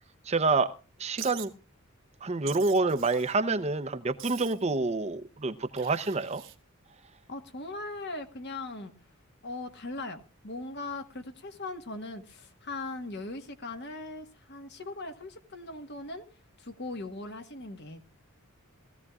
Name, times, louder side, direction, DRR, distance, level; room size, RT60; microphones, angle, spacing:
voice 1, 0.3-0.7 1.0-1.5 2.2-6.4, right 3 dB, 30° right, 0.7 m, -27 dB
Wild animals, 1.2-1.5 2.5-3.3 4.2-4.7 5.8-6.6, right 14 dB, 60° right, 1.1 m, -44 dB
voice 2, 7.3-8.9 9.4-16.3 16.6-18.0, left 2 dB, 50° left, 1.4 m, -39 dB
20.0 x 15.0 x 2.4 m
head